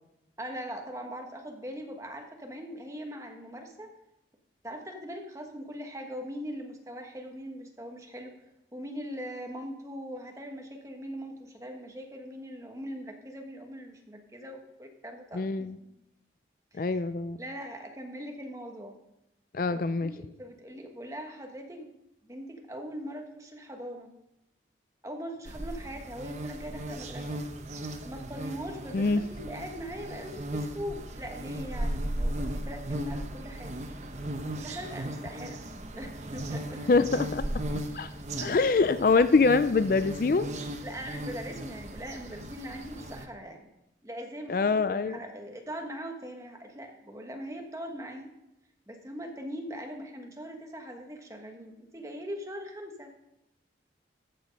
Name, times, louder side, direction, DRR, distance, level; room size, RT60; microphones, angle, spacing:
voice 1, 0.4-3.9 4.6-8.3 8.7-15.7 16.7-17.0 17.4-18.9 19.7-21.9 22.2-24.1 25.0-27.4 28.0-33.7 34.6-35.6 36.0-36.8 40.8-43.7 44.0-48.3 48.9-53.1, equal, 15° right, 3 dB, 1.3 m, -41 dB
voice 2, 15.3-15.8 16.8-17.4 19.5-20.1 28.9-29.2 36.9-37.4 37.9-38.1 38.4-40.5 44.5-45.2, left 4 dB, 50° left, 13 dB, 0.4 m, -24 dB
sound 1, 25.4-43.3, right 1 dB, 40° right, 0.8 m, -37 dB
14.5 x 6.2 x 5.3 m, 0.88 s
head